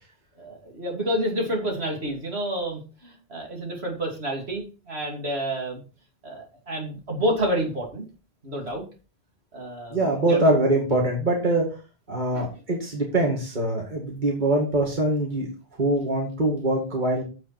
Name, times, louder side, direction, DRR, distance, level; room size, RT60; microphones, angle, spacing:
voice 1, 0.4-5.8 6.2-8.0 8.4-8.8 9.5-10.4 12.3-12.5, equal, 90° right, 1 dB, 3.1 m, -29 dB
voice 2, 9.9-11.7 12.1-15.5 15.8-17.2, right 1 dB, 50° right, -1 dB, 2.4 m, -23 dB
9.2 x 7.3 x 4.4 m, 0.33 s
omnidirectional pair, 1.1 m